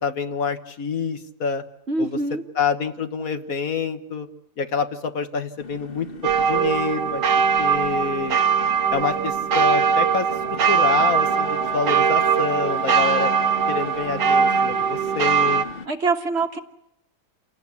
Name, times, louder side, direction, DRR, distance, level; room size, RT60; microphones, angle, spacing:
voice 1, 0.0-1.6 2.0-2.1 2.5-4.3 4.6-6.1 6.4-7.2 7.6-8.4 8.9-13.3 13.7-15.7, left 5 dB, 60° left, 9 dB, 1.5 m, -27 dB
voice 2, 1.9-2.4 15.8-16.6, right 3 dB, 40° right, 6 dB, 1.3 m, -24 dB
sound 1, 5.6-15.9, left 4 dB, 35° left, 1.2 m, -37 dB
sound 2, 6.2-15.6, right 6 dB, 85° right, 2.0 m, -21 dB
28.0 x 18.0 x 8.4 m, 0.85 s
omnidirectional pair, 1.8 m